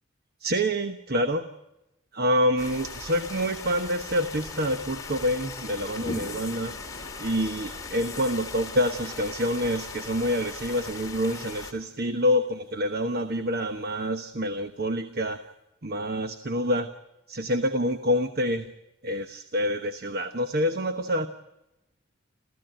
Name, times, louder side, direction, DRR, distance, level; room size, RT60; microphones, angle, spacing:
voice 1, 0.4-1.5 2.1-6.8 7.2-15.4 15.8-16.9 17.3-18.7 19.0-21.3, equal, 50° right, 8 dB, 1.1 m, -27 dB
sound 1, 2.6-11.7, left 4 dB, 15° left, 2.7 m, -39 dB
sound 2, 5.7-14.1, left 1 dB, 50° left, 1.3 m, -46 dB
28.0 x 15.5 x 9.1 m, 0.93 s
head